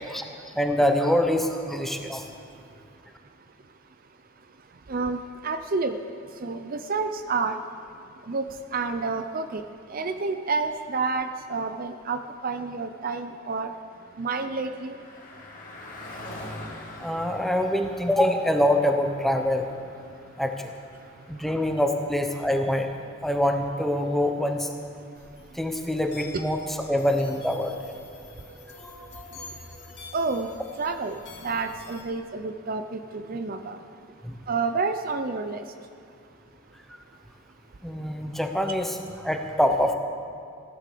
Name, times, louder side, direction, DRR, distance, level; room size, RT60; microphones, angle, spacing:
voice 1, 0.1-2.3 17.0-19.7 20.4-20.7 21.3-22.9 23.2-24.7 25.5-26.6 26.9-27.7 28.9-29.5 34.2-34.4 37.8-39.9, left 1 dB, ahead, 4 dB, 0.9 m, -25 dB
voice 2, 4.9-6.0 6.4-7.6 8.3-8.5 8.7-9.6 9.9-13.7 14.2-15.0 30.1-30.5 30.8-33.8 34.5-35.6, right 4 dB, 45° right, 9 dB, 0.5 m, -29 dB
Car passing by, 13.2-25.0, left 1 dB, 40° left, 2.2 m, -46 dB
sound 1, 25.1-32.0, left 3 dB, 55° left, 2.8 m, -47 dB
15.5 x 11.0 x 6.8 m, 2.4 s
head